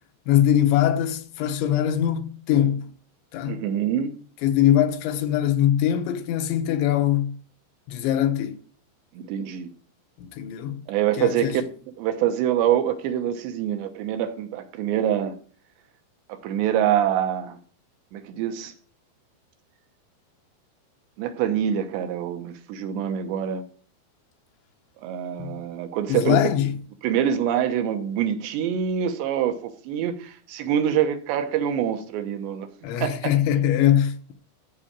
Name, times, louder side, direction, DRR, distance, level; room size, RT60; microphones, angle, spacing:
voice 1, 0.3-2.9 3.3-3.6 4.4-7.4 7.9-8.6 10.2-10.8 11.2-11.6 25.4-25.6 26.1-26.8 32.8-34.3, left 11 dB, 80° left, 3.4 m, -22 dB
voice 2, 3.5-4.1 9.1-9.7 10.9-11.6 12.0-15.3 16.3-17.6 18.1-18.7 21.2-23.6 25.0-26.5 27.0-32.7 33.0-33.2, right 9 dB, 75° right, 3.3 m, -25 dB
14.0 x 4.9 x 8.8 m
omnidirectional pair, 5.2 m